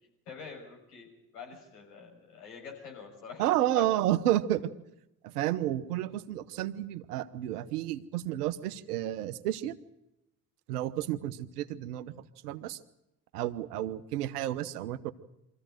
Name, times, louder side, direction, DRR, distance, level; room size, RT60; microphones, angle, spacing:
voice 1, 0.3-1.1 1.3-3.4 3.8-3.9, left 6 dB, 80° left, 0 dB, 6.2 m, -45 dB
voice 2, 3.4-4.7 5.2-9.8 10.7-12.2 12.4-12.8 13.3-15.1, right 13 dB, 80° right, 13 dB, 1.1 m, -31 dB
24.0 x 15.0 x 9.1 m, 0.87 s
hypercardioid pair, 55°, 45 cm